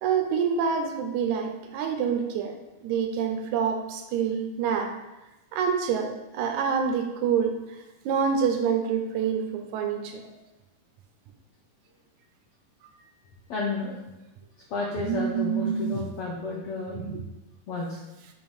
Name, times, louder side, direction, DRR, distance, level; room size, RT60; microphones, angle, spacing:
voice 1, 0.0-4.9 5.5-7.8 8.1-10.2 15.0-16.0 17.0-17.2, right 7 dB, 85° right, 5 dB, 1.7 m, -27 dB
voice 2, 13.5-14.0 14.7-17.0 17.7-18.0, left 3 dB, 85° left, -4 dB, 1.3 m, -32 dB
7.0 x 3.1 x 5.4 m, 1.0 s
omnidirectional pair, 3.9 m